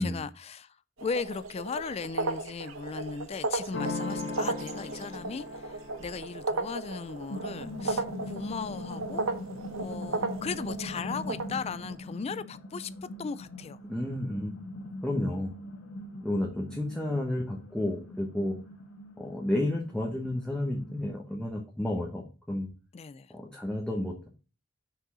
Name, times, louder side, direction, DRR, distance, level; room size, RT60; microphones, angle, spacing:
voice 1, 0.0-9.3 9.8-12.9 13.2-13.8 22.9-23.3, left 5 dB, 30° left, 0.3 m, -37 dB
sound 1, 1.0-11.9, right 3 dB, 90° right, 0.9 m, -35 dB
sound 2, 3.7-9.3, left 3 dB, 60° left, 1.2 m, -40 dB
sound 3, 6.8-21.1, left 1 dB, 80° left, 1.5 m, -42 dB
voice 2, 13.9-14.5 15.0-15.5 16.2-18.6 19.2-22.7 23.3-24.3, left 1 dB, 5° left, 1.2 m, -31 dB
6.2 x 5.4 x 4.1 m
head